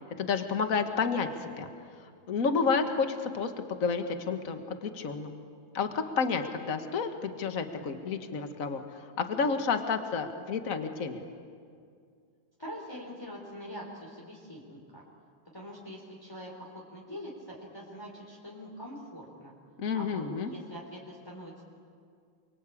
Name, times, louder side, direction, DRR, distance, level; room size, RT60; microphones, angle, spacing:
voice 1, 0.2-1.7 2.0-3.5 3.8-5.3 5.7-11.2 19.8-20.5, left 5 dB, 40° left, 6 dB, 1.9 m, -30 dB
voice 2, 12.6-15.0 15.4-19.5 19.9-21.6, equal, 10° left, -3 dB, 4.1 m, -44 dB
29.0 x 24.0 x 8.6 m, 2.2 s
omnidirectional pair, 2.3 m